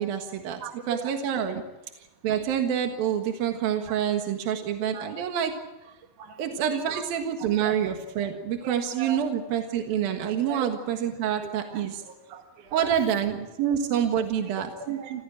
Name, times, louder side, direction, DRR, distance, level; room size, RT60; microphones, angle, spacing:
voice 1, 0.0-0.6 0.9-1.6 2.2-5.5 6.4-12.0 12.7-14.7, right 9 dB, 80° right, 4 dB, 3.4 m, -27 dB
voice 2, 0.6-1.1 3.9-4.0 4.9-5.1 6.2-7.0 7.6-7.7 8.6-9.2 10.5-10.7 11.7-13.1 14.6-15.2, right 7 dB, 60° right, 3 dB, 3.2 m, -38 dB
29.0 x 15.5 x 8.9 m, 1.0 s
omnidirectional pair, 4.2 m